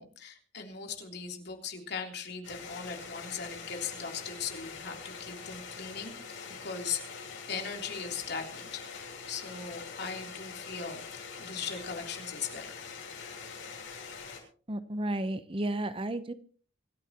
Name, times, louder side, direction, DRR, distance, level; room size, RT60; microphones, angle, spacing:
voice 1, 0.0-6.1 6.6-7.0 7.5-12.9, left 6 dB, 60° left, 2 dB, 3.4 m, -39 dB
sound 1, 2.4-14.4, left 5 dB, 80° left, 6.8 m, -44 dB
voice 2, 14.7-16.3, right 1 dB, 30° right, 12 dB, 0.9 m, -32 dB
25.0 x 14.0 x 3.0 m, 0.41 s
head